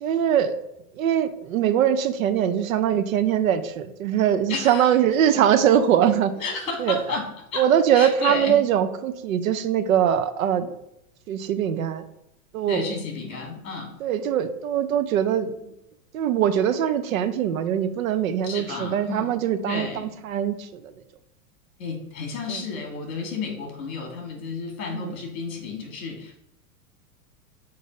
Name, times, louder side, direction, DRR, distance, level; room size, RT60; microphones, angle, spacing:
voice 1, 0.0-0.5 1.0-6.3 6.8-7.0 7.6-10.7 11.3-12.0 12.5-12.9 14.0-15.7 16.1-20.9 22.5-22.6 24.9-25.1, right 9 dB, 60° right, 11 dB, 0.6 m, -22 dB
voice 2, 4.5-5.0 6.4-7.7 7.9-8.6 12.7-14.0 18.4-20.2 21.8-26.4, left 4 dB, 55° left, 2 dB, 2.1 m, -32 dB
6.9 x 2.6 x 5.1 m, 0.83 s
supercardioid pair, 180°, 47 cm